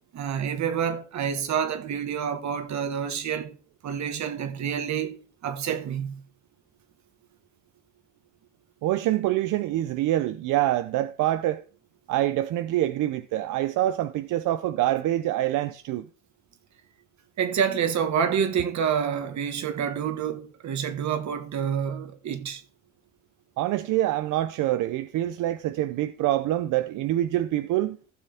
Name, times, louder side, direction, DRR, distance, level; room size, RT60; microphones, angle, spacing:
voice 1, 0.1-3.5 3.8-5.2 5.4-6.2 17.4-22.6, right 7 dB, 65° right, 1.6 m, -28 dB
voice 2, 8.8-11.6 12.1-16.1 23.6-28.0, right 14 dB, 90° right, 0.6 m, -25 dB
15.0 x 6.7 x 3.5 m
cardioid pair, 90°, 30 cm